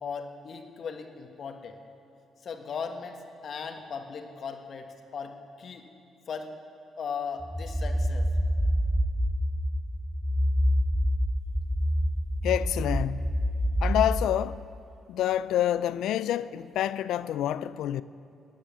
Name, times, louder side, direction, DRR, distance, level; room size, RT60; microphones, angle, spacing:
voice 1, 0.0-1.8 2.4-5.9 6.3-6.5 7.0-8.3, left 6 dB, 60° left, 1.5 m, -38 dB
sound 1, 7.4-14.2, equal, ahead, 0.9 m, -27 dB
voice 2, 12.4-13.3 13.8-14.7 15.1-18.0, left 11 dB, 75° left, 0.4 m, -27 dB
18.5 x 9.9 x 6.8 m
hypercardioid pair, 50°, 0 cm